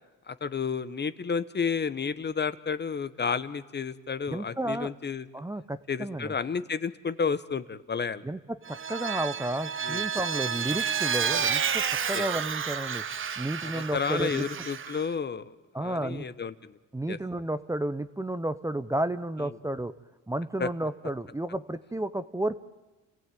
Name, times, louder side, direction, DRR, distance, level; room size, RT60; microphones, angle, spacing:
voice 1, 0.3-5.3 5.9-8.2 9.8-10.0 12.1-12.2 13.6-15.5 15.8-16.8 17.1-17.2 20.6-20.7, left 6 dB, 35° left, 14 dB, 1.0 m, -31 dB
voice 2, 4.3-4.9 5.3-6.3 8.2-13.0 13.4-14.4 15.7-16.3 16.9-19.9 20.3-22.6, right 1 dB, 10° right, 12 dB, 0.8 m, -32 dB
Vehicle, 8.7-15.0, right 7 dB, 40° right, 1.0 m, -30 dB
29.5 x 16.0 x 9.2 m, 1.2 s
cardioid pair, 90°, 32 cm